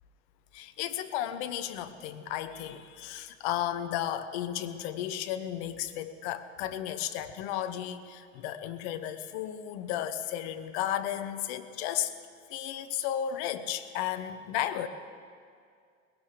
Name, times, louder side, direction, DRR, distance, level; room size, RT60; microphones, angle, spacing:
voice 1, 0.5-12.1 12.5-14.9, left 11 dB, 50° left, 11 dB, 1.0 m, -34 dB
19.5 x 17.5 x 3.4 m, 2.2 s
figure-of-eight pair, 80°, 39 cm